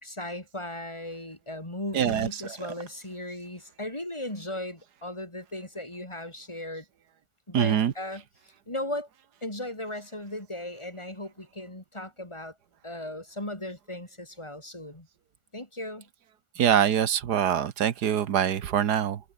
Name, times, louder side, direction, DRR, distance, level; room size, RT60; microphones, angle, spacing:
voice 1, 0.0-6.8 7.5-8.2 8.7-9.1 9.4-12.6 12.8-15.1 15.5-16.1, left 1 dB, 15° left, 4.5 m, -37 dB
voice 2, 1.9-2.3 7.5-7.9 16.6-19.2, right 9 dB, 80° right, 1.7 m, -24 dB
omnidirectional pair, 1.7 m